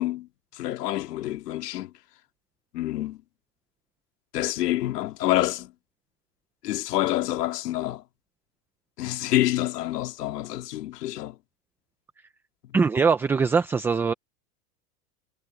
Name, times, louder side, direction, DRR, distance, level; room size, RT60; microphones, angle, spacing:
voice 1, 0.0-1.9 2.7-3.2 4.3-5.7 6.6-8.0 9.0-11.4, left 15 dB, 80° left, 2.6 m, -27 dB
voice 2, 12.7-14.1, right 5 dB, 5° right, 0.3 m, -22 dB
supercardioid pair, 130°, 47 cm